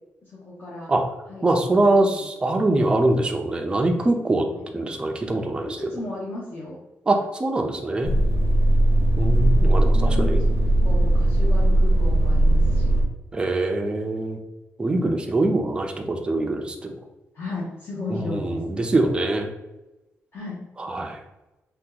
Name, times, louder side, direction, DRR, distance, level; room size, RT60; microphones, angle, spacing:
voice 1, 0.2-0.9 1.3-2.3 5.8-6.8 9.9-12.9 17.3-18.6 20.3-20.6, left 2 dB, 50° left, -7 dB, 0.8 m, -34 dB
voice 2, 1.4-4.5 4.7-5.8 7.1-8.1 9.2-10.4 13.3-14.4 14.8-16.9 18.1-19.5 20.8-21.2, right 2 dB, 20° right, 3 dB, 0.3 m, -23 dB
sound 1, 8.0-13.0, right 1 dB, 85° right, 0.5 m, -19 dB
2.8 x 2.2 x 3.7 m, 1.0 s
wide cardioid pair, 160°, 5 cm